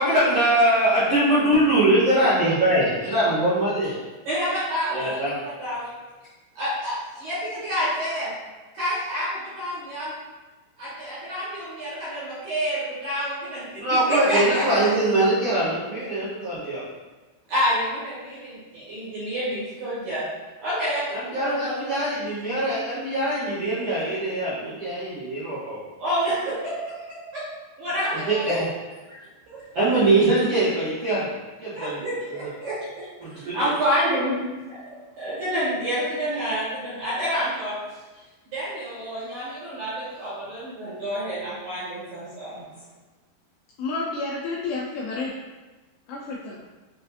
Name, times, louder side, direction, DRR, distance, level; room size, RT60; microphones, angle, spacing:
voice 1, 0.0-4.0 4.9-5.4 13.8-16.8 21.1-25.8 28.1-28.7 29.7-31.2 31.6-32.0 32.4-32.5 33.2-33.6, right 1 dB, 85° right, -13 dB, 1.2 m, -22 dB
voice 2, 4.2-5.9 6.5-8.3 8.7-10.1 10.8-15.1 17.5-20.3 20.6-22.0 26.0-27.4 27.8-28.6 29.5-29.6 31.7-34.8 35.2-37.8 38.5-42.7, equal, 70° right, -10 dB, 1.9 m, -28 dB
voice 3, 43.8-45.3 46.1-46.6, left 3 dB, 85° left, -4 dB, 2.1 m, -30 dB
6.3 x 2.3 x 2.7 m, 1.2 s
omnidirectional pair, 4.7 m